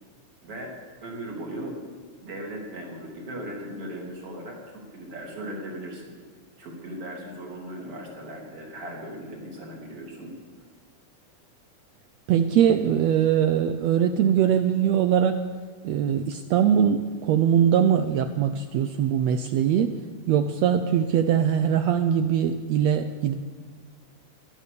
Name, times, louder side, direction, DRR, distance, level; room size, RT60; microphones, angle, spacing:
voice 1, 0.4-0.7 1.0-1.8 2.2-6.1 6.6-10.3, right 1 dB, 50° right, -2 dB, 4.1 m, -38 dB
voice 2, 12.3-15.4 15.8-19.9 20.3-23.3, right 9 dB, 80° right, 9 dB, 1.5 m, -22 dB
16.5 x 12.0 x 6.8 m, 1.5 s
omnidirectional pair, 3.7 m